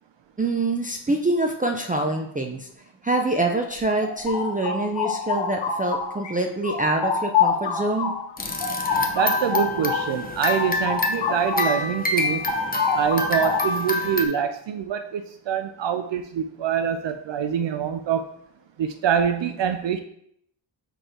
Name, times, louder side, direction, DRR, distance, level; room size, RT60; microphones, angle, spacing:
voice 1, 0.4-2.7 3.0-8.1, right 2 dB, 20° right, 2 dB, 0.5 m, -25 dB
sound 1, 3.8-6.3 6.6-11.9 12.2-13.9, left 5 dB, 65° left, 1.1 m, -27 dB
sound 2, 8.4-14.3, left 2 dB, 20° left, 0.8 m, -27 dB
voice 2, 9.1-12.4 12.9-18.3 18.8-20.0, right 8 dB, 65° right, 7 dB, 0.5 m, -25 dB
4.9 x 4.4 x 4.4 m, 0.70 s
wide cardioid pair, 100°, 48 cm